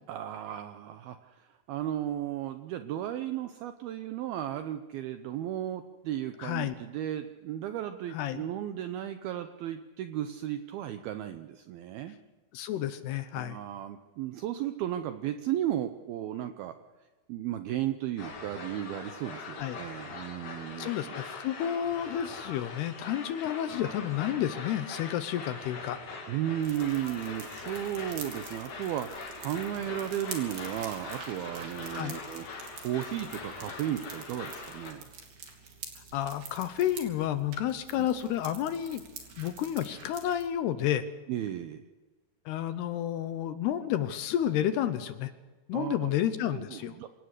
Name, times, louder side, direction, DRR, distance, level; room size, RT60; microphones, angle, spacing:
voice 1, 0.1-12.2 13.4-16.8 17.3-21.2 26.3-29.1 29.4-32.5 32.8-35.1 37.9-38.1 41.3-41.8 45.7-46.1 46.5-47.1, right 12 dB, 80° right, 9 dB, 2.2 m, -34 dB
voice 2, 6.4-6.7 8.1-8.5 12.5-13.6 19.4-19.8 20.8-26.0 31.9-32.2 36.1-39.0 39.4-41.1 42.5-45.3 45.7-47.0, left 11 dB, 75° left, 11 dB, 2.6 m, -31 dB
sound 1, 18.2-34.9, left 4 dB, 50° left, 3.8 m, -42 dB
sound 2, 26.6-40.4, right 6 dB, 60° right, 4.5 m, -47 dB
26.5 x 17.5 x 6.6 m, 1.3 s
omnidirectional pair, 5.3 m